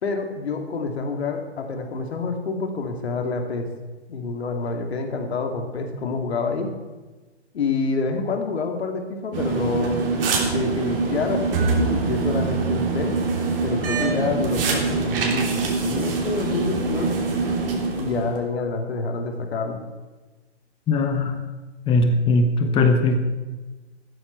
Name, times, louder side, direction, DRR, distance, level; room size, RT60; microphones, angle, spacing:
voice 1, 0.0-3.7 4.1-6.7 7.5-10.0 10.5-13.2 13.6-17.3 18.0-19.8, left 4 dB, 65° left, 4 dB, 2.6 m, -27 dB
sound 1, 9.3-18.4, right 4 dB, 50° right, 3.2 m, -24 dB
voice 2, 20.9-21.4 21.9-23.2, left 2 dB, 15° left, 7 dB, 1.1 m, -19 dB
14.5 x 12.5 x 4.6 m, 1.2 s
hypercardioid pair, 135°, 35 cm